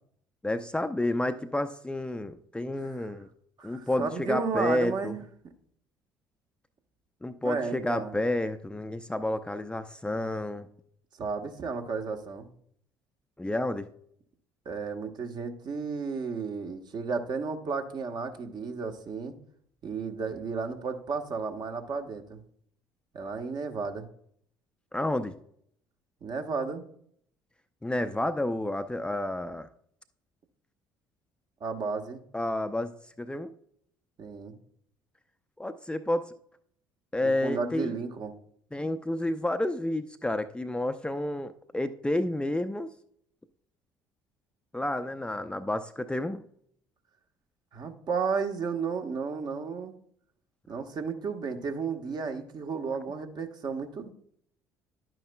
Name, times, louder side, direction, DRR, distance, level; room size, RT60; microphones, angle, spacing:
voice 1, 0.4-3.3 3.6-5.1 7.2-10.7 13.4-13.9 24.9-25.3 27.8-29.7 32.3-32.9 33.2-33.5 35.6-36.3 37.1-38.0 38.7-42.9 44.7-46.4, left 1 dB, 10° left, 9 dB, 0.5 m, -30 dB
voice 2, 3.6-5.2 7.4-8.1 11.2-12.5 14.6-19.3 19.8-22.4 23.1-24.1 26.2-26.8 31.6-32.2 34.2-34.6 37.2-38.3 47.7-49.9 50.7-54.1, right 5 dB, 45° right, 5 dB, 1.1 m, -33 dB
11.0 x 9.0 x 2.2 m, 0.65 s
figure-of-eight pair, 55°, 10 cm